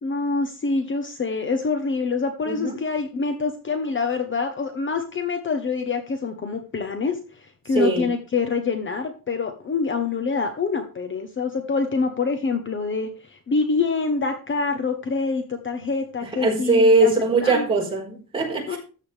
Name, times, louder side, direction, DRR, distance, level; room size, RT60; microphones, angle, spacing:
voice 1, 0.0-17.1 17.4-17.7 18.7-18.8, left 4 dB, 35° left, 7 dB, 1.0 m, -26 dB
voice 2, 7.7-8.1 16.4-18.8, right 2 dB, 15° right, -3 dB, 4.2 m, -20 dB
13.5 x 8.0 x 3.4 m, 0.37 s
wide cardioid pair, 175°, 35 cm